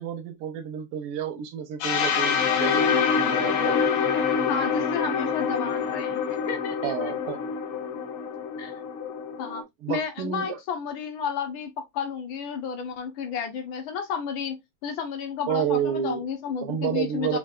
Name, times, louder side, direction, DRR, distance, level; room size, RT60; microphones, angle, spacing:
voice 1, 0.0-3.8 6.8-7.4 9.8-10.6 15.5-16.2 16.6-17.4, right 9 dB, 80° right, 1.6 m, -30 dB
sound 1, 1.8-9.6, left 6 dB, 85° left, 1.8 m, -26 dB
voice 2, 4.5-7.1 8.6-8.7 9.4-9.6 9.9-14.6 14.8-17.4, left 6 dB, 70° left, 1.5 m, -32 dB
5.1 x 2.4 x 2.3 m
omnidirectional pair, 2.4 m